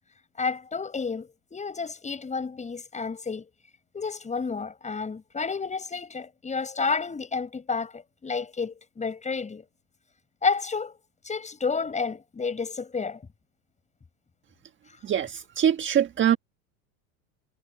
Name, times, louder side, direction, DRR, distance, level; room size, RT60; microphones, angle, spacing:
voice 1, 0.4-3.5 3.9-9.6 10.4-10.9 11.2-13.2, left 5 dB, 15° left, 7.9 m, -30 dB
voice 2, 15.0-16.4, right 9 dB, 30° right, 1.5 m, -23 dB
hypercardioid pair, 105°, 40 cm